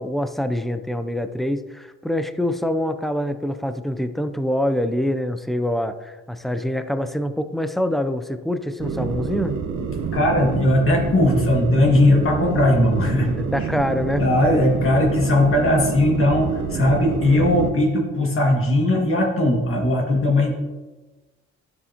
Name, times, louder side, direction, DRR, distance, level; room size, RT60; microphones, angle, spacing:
voice 1, 0.0-9.6 13.5-14.2, left 1 dB, ahead, 10 dB, 0.5 m, -25 dB
sound 1, 8.8-17.7, right 5 dB, 65° right, 1.0 m, -27 dB
voice 2, 10.1-13.3 13.6-13.7 14.2-20.6, left 1 dB, 45° left, -1 dB, 2.0 m, -18 dB
11.0 x 6.9 x 2.9 m, 1.2 s
cardioid pair, 90°, 30 cm